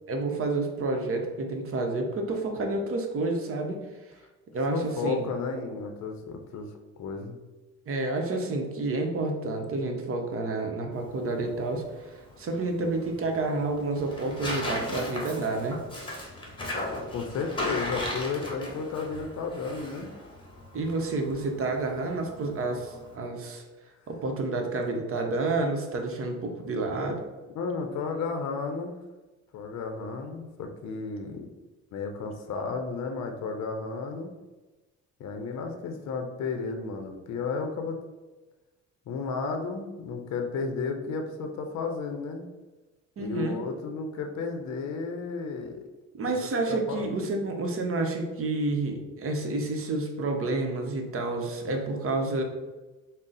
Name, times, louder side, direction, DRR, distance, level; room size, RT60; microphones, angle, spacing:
voice 1, 0.1-3.8 4.5-5.2 7.9-15.8 20.7-23.6 24.1-27.2 43.2-43.6 46.1-52.4, right 2 dB, 45° right, 3 dB, 0.7 m, -29 dB
voice 2, 4.7-6.7 7.0-7.4 16.8-20.1 27.5-29.0 29.5-31.5 31.9-34.3 35.2-38.0 39.1-42.5 43.2-45.8 46.2-46.3 46.7-47.2, left 4 dB, 65° left, 5 dB, 0.5 m, -33 dB
Tearing, 10.9-23.2, left 1 dB, 15° left, 1.1 m, -37 dB
3.7 x 2.0 x 3.9 m, 1.2 s
cardioid pair, 90°, 30 cm